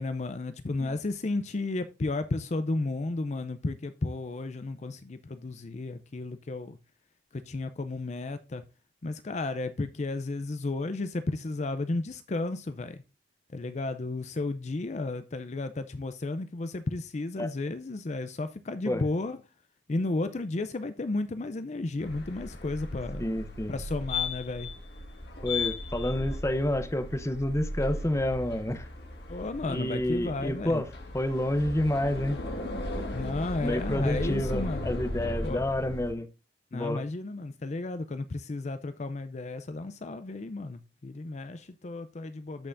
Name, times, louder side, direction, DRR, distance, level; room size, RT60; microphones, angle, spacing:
voice 1, 0.0-6.8 7.3-8.6 9.0-13.0 13.5-19.4 19.9-23.2 23.7-24.7 29.3-30.8 33.1-34.9 35.4-35.6 36.7-42.7, left 2 dB, 40° left, 0.5 m, -33 dB
sound 1, 22.0-36.1, left 2 dB, 60° left, 1.9 m, -36 dB
voice 2, 23.2-23.7 25.4-28.9 29.7-30.9 31.1-32.4 33.6-36.3 36.7-37.0, left 1 dB, 15° left, 0.8 m, -29 dB
13.0 x 5.6 x 2.6 m
head